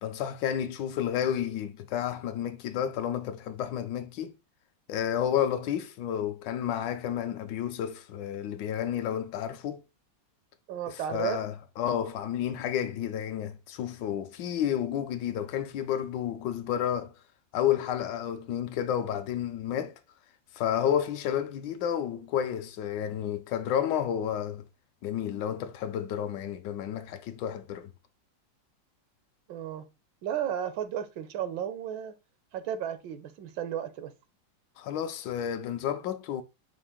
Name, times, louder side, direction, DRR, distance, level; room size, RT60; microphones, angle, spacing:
voice 1, 0.0-4.4 4.9-9.8 10.9-17.1 17.5-20.0 20.5-24.7 25.0-27.9 34.8-36.4, left 9 dB, 75° left, 1.2 m, -31 dB
voice 2, 10.7-11.4 29.5-29.8 30.2-32.1 32.5-34.1, right 9 dB, 80° right, 1.4 m, -33 dB
5.6 x 2.5 x 3.6 m
omnidirectional pair, 2.0 m